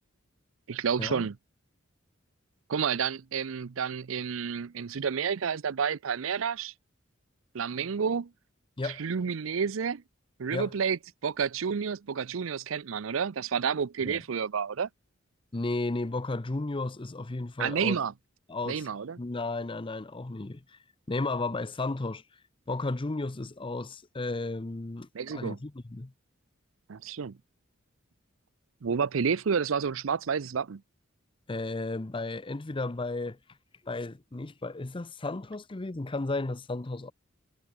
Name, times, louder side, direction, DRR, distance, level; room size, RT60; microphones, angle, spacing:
voice 1, 0.7-1.4 2.7-6.7 7.5-8.3 8.8-10.0 10.4-14.9 17.6-18.1 18.7-19.2 25.1-25.6 26.9-27.4 28.8-30.8, right 6 dB, 75° right, 0.5 m, -30 dB
voice 2, 15.5-18.0 18.5-18.9 19.2-20.8 21.1-22.2 22.7-26.1 31.5-33.4 33.8-37.1, left 2 dB, 25° left, 0.7 m, -34 dB
head